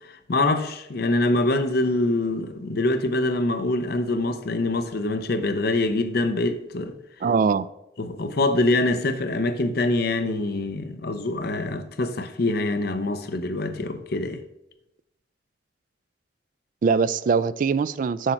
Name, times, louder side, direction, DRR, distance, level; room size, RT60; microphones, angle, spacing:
voice 1, 0.0-7.0 8.0-14.4, left 2 dB, 60° left, 0.7 m, -24 dB
voice 2, 7.2-7.7 16.8-18.3, right 5 dB, 50° right, 0.3 m, -22 dB
6.5 x 4.3 x 5.7 m
head